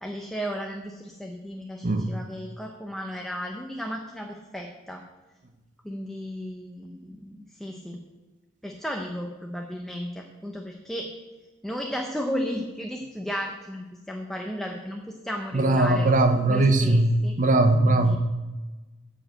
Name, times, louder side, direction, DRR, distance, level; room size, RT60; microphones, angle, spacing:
voice 1, 0.0-5.0 5.8-8.0 8.6-11.1 11.6-16.1 16.5-17.4 17.8-18.2, equal, ahead, 2 dB, 0.6 m, -34 dB
voice 2, 15.5-17.1 17.4-18.2, right 2 dB, 40° right, 8 dB, 0.8 m, -20 dB
9.6 x 5.0 x 7.7 m, 1.2 s
head